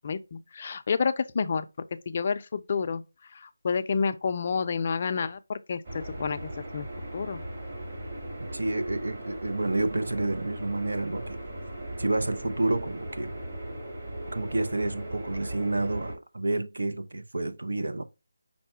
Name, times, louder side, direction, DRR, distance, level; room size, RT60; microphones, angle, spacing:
voice 1, 0.0-1.7 2.1-3.0 3.3-6.9 7.1-7.4, left 5 dB, 35° left, 0.4 m, -29 dB
sound 1, 5.8-16.1, right 1 dB, 40° right, 1.7 m, -38 dB
voice 2, 8.4-11.4 12.0-13.3 14.3-18.0, right 2 dB, 75° right, 0.7 m, -29 dB
5.5 x 2.1 x 4.4 m
figure-of-eight pair, 165°, 0 cm